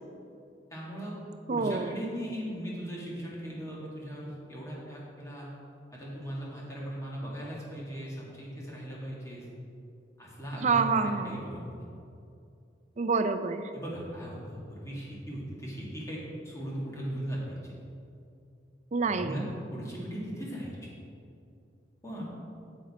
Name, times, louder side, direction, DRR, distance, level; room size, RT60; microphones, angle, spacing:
voice 1, 0.7-1.1 1.5-5.5 5.9-9.4 10.2-11.7 13.7-16.2 16.4-17.8 19.0-19.4 19.7-20.9 22.0-22.2, equal, 15° left, -5 dB, 1.9 m, -38 dB
voice 2, 1.5-2.0 10.6-11.4 13.0-13.7 18.9-19.4, right 4 dB, 40° right, 9 dB, 0.4 m, -27 dB
9.2 x 7.1 x 4.2 m, 2.5 s
head